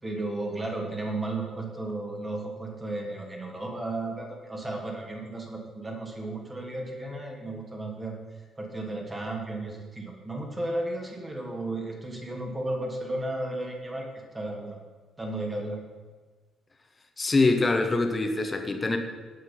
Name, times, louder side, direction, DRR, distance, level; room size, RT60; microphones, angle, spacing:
voice 1, 0.0-8.2 8.6-14.1 14.3-14.8 15.2-15.8, right 2 dB, 20° right, 1 dB, 3.1 m, -34 dB
voice 2, 17.2-19.0, left 3 dB, 25° left, 5 dB, 1.7 m, -24 dB
17.5 x 6.4 x 5.7 m, 1.4 s
figure-of-eight pair, 45°, 0 cm